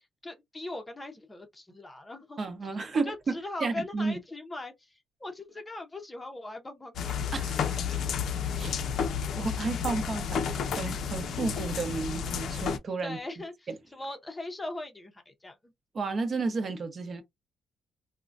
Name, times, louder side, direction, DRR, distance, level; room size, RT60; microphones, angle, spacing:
voice 1, 0.2-2.5 2.9-4.9 5.2-7.0 13.0-15.7, left 2 dB, 15° left, 0.7 m, -40 dB
voice 2, 2.4-4.2 7.3-8.0 8.6-8.8 9.4-13.2 13.7-13.8 15.9-17.2, right 4 dB, 40° right, 0.8 m, -32 dB
sound 1, 7.0-12.8, left 7 dB, 70° left, 0.5 m, -31 dB
3.7 x 2.1 x 2.5 m
cardioid pair, 135°, 0 cm